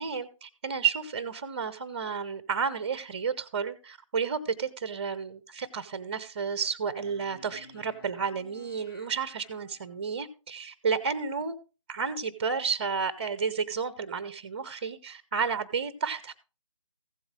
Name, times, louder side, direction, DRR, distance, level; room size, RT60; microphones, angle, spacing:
voice 1, 0.0-11.5 11.9-16.3, right 6 dB, 20° right, 14 dB, 0.5 m, -31 dB
sound 1, 7.0-10.3, left 2 dB, 50° left, 2.5 m, -54 dB
15.0 x 7.9 x 3.2 m, 0.33 s
figure-of-eight pair, 155°, 17 cm